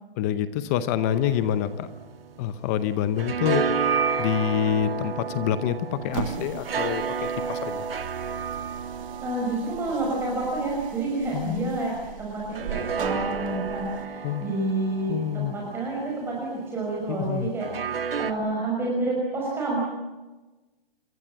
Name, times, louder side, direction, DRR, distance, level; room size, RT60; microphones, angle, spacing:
voice 1, 0.2-1.9 2.4-3.7 4.2-7.0 7.5-7.8 11.3-11.8 14.2-14.5 15.1-15.5 17.2-17.5, left 10 dB, 15° left, 13 dB, 0.8 m, -26 dB
sound 1, 1.0-2.7 3.0-11.7 12.5-16.6 17.6-18.3, right 6 dB, 70° right, 2.5 m, -31 dB
sound 2, 6.0-14.1, right 9 dB, 35° right, 3.1 m, -39 dB
voice 2, 9.2-19.8, right 2 dB, 10° right, -3 dB, 5.7 m, -29 dB
28.0 x 23.5 x 7.6 m, 1.2 s
hypercardioid pair, 160°, 30 cm